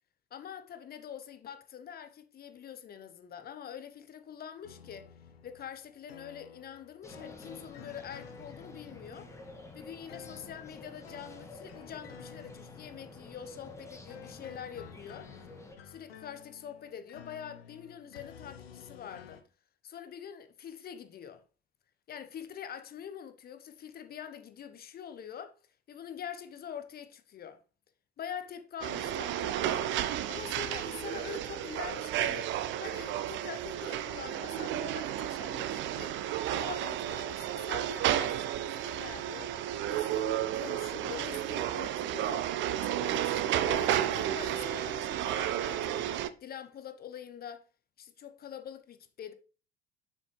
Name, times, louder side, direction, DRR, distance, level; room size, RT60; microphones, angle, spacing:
voice 1, 0.3-5.1 5.4-9.3 9.7-15.3 15.8-19.4 19.8-21.4 22.1-25.6 25.9-27.6 28.2-29.9 30.3-36.2 36.5-39.5 39.9-42.5 42.8-47.6 48.0-49.3, left 8 dB, 30° left, 0.9 m, -45 dB
sound 1, 4.6-19.4, left 7 dB, 75° left, 0.8 m, -52 dB
sound 2, 7.0-15.8, left 2 dB, 10° left, 1.5 m, -50 dB
sound 3, 28.8-46.3, right 11 dB, 40° right, 0.6 m, -32 dB
7.1 x 6.1 x 3.2 m
figure-of-eight pair, 65°, 30 cm